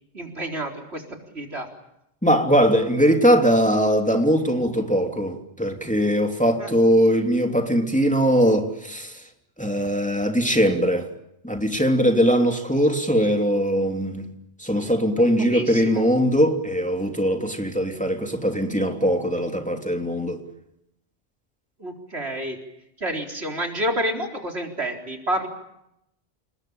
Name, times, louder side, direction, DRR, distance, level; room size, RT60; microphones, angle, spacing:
voice 1, 0.1-1.0 1.3-1.7 6.6-6.8 14.7-14.8 15.2-16.0 21.8-22.6 23.0-25.5, right 1 dB, 80° right, 4.5 m, -29 dB
voice 2, 2.2-9.2 9.6-11.1 11.4-14.3 14.6-20.4, equal, 5° left, 3.1 m, -21 dB
29.0 x 20.5 x 8.8 m
omnidirectional pair, 1.1 m